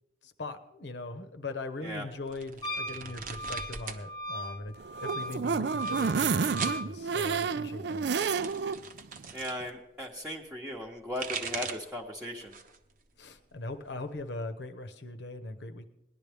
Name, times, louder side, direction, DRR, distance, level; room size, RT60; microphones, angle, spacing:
voice 1, 0.2-8.1 13.2-15.9, left 2 dB, 80° left, 7 dB, 1.0 m, -40 dB
sound 1, 2.3-4.0 4.3-5.0 5.7-6.8 7.8-9.6 10.9-12.0 12.4-12.9 13.2-14.2, right 5 dB, 50° right, 0.8 m, -40 dB
Wind instrument woodwind instrument, 2.6-6.9, right 1 dB, 25° left, 0.6 m, -38 dB
sound 2, 4.8-8.8 9.2-9.3 9.6-9.7, right 5 dB, 70° right, 0.4 m, -30 dB
voice 2, 9.3-12.5, left 1 dB, 5° right, -3 dB, 0.9 m, -37 dB
19.0 x 11.0 x 3.5 m, 0.90 s
head